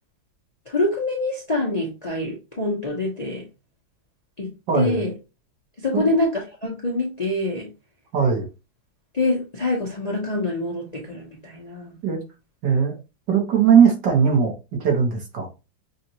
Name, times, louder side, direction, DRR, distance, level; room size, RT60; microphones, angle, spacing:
voice 1, 0.7-3.5 4.4-4.5 4.7-5.1 5.8-7.7 9.1-11.9, left 2 dB, 30° left, 0.7 m, -25 dB
voice 2, 4.7-5.1 5.9-6.1 8.1-8.5 12.0-12.2 12.6-12.9 13.3-14.5 14.8-15.5, right 7 dB, 70° right, 2.0 m, -19 dB
6.0 x 2.5 x 2.9 m
omnidirectional pair, 2.0 m